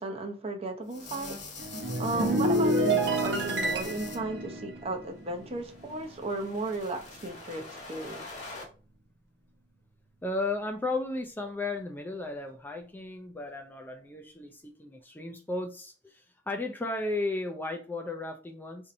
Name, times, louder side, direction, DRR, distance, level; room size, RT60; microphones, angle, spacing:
voice 1, 0.0-1.4 2.0-8.3, right 2 dB, 35° right, 0.7 m, -35 dB
sound 1, 0.9-4.2 5.3-8.6, left 3 dB, 40° left, 1.0 m, -45 dB
sound 2, 1.6-6.2 6.5-6.8, right 1 dB, 80° right, 1.0 m, -29 dB
voice 2, 10.2-18.9, left 2 dB, 10° left, 0.4 m, -34 dB
4.2 x 2.7 x 2.6 m
head